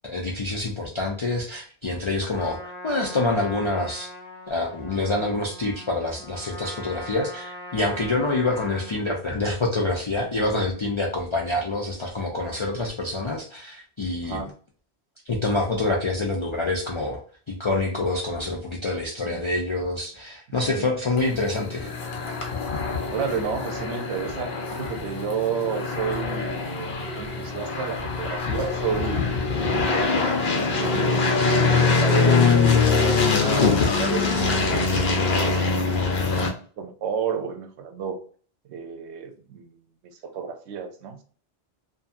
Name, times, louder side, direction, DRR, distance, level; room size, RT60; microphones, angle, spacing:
voice 1, 0.0-4.1 4.5-14.5 15.3-17.2 17.5-21.9, left 2 dB, 55° left, -1 dB, 0.3 m, -26 dB
Trumpet, 2.2-9.0, left 1 dB, 25° right, 0.7 m, -40 dB
sound 1, 21.2-36.5, left 4 dB, 70° left, 0.9 m, -23 dB
voice 2, 23.1-29.3 29.9-31.2 31.7-35.8 36.0-36.4 36.8-38.2 38.7-39.8 40.2-41.2, right 6 dB, 85° right, 6 dB, 0.9 m, -31 dB
2.6 x 2.5 x 2.4 m, 0.43 s
omnidirectional pair, 1.1 m